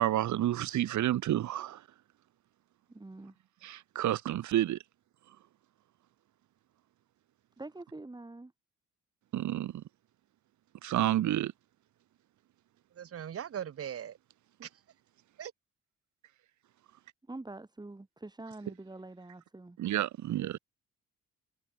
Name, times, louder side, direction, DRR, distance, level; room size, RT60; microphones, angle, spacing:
voice 1, 0.0-1.8 3.6-4.8 9.3-9.8 10.8-11.5 19.8-20.6, right 13 dB, 70° right, 1.6 m, -30 dB
voice 2, 2.9-3.4 7.6-8.5 17.3-19.8, right 2 dB, 15° right, 2.5 m, -45 dB
voice 3, 13.0-14.2 14.6-14.7 15.4-15.5, right 9 dB, 50° right, 1.3 m, -39 dB
cardioid pair, 90°, 30 cm